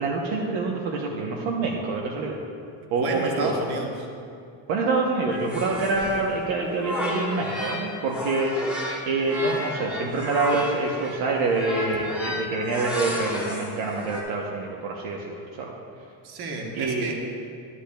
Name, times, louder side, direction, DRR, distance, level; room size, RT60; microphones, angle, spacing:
voice 1, 0.0-2.4 2.9-3.5 4.7-8.7 9.1-15.7 16.7-17.1, right 3 dB, 70° right, -1 dB, 1.0 m, -26 dB
voice 2, 3.0-4.1 16.2-17.1, right 2 dB, 50° right, 1 dB, 1.3 m, -31 dB
sound 1, 5.3-7.8 8.1-14.2, left 1 dB, 5° right, 1.1 m, -32 dB
12.0 x 11.0 x 2.3 m, 2.4 s
cardioid pair, 180°, 49 cm